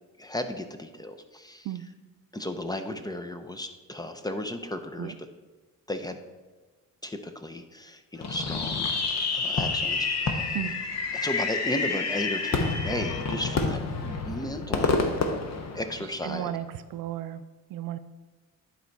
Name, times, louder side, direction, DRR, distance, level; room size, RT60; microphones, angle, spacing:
voice 1, 0.2-1.7 2.3-5.1 5.9-6.2 7.0-8.9 9.3-10.6 11.1-15.0 15.7-16.6, left 1 dB, 10° left, 7 dB, 0.5 m, -35 dB
Fireworks, 8.2-16.3, left 4 dB, 50° left, 1.0 m, -28 dB
voice 2, 16.2-16.7 16.9-17.4 17.7-18.0, right 13 dB, 75° right, 12 dB, 0.5 m, -33 dB
10.5 x 4.1 x 4.5 m, 1.3 s
cardioid pair, 110°, 34 cm